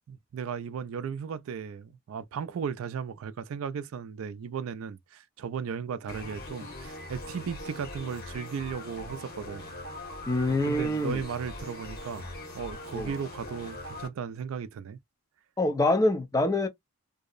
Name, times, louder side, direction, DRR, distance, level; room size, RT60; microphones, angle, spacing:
voice 1, 0.1-9.6 10.5-12.3 12.5-15.0, right 6 dB, 70° right, 0.3 m, -36 dB
sound 1, 6.1-14.1, left 1 dB, 45° left, 1.1 m, -41 dB
voice 2, 10.3-11.2 12.9-13.1 15.6-16.7, left 2 dB, 15° left, 0.5 m, -25 dB
2.7 x 2.0 x 2.4 m
head